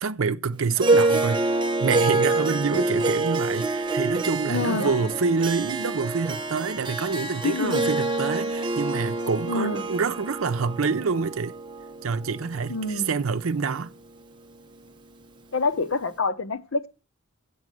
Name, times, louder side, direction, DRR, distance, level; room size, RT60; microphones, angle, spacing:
voice 1, 0.0-1.4 1.8-11.5 12.0-13.9, right 5 dB, 85° right, 0.6 m, -27 dB
Harp, 0.8-13.3, right 2 dB, 20° right, 1.0 m, -26 dB
voice 2, 4.5-5.1 7.4-7.9 9.5-9.9 12.7-13.2 15.5-16.9, left 3 dB, 75° left, 0.9 m, -27 dB
8.1 x 6.3 x 7.8 m
head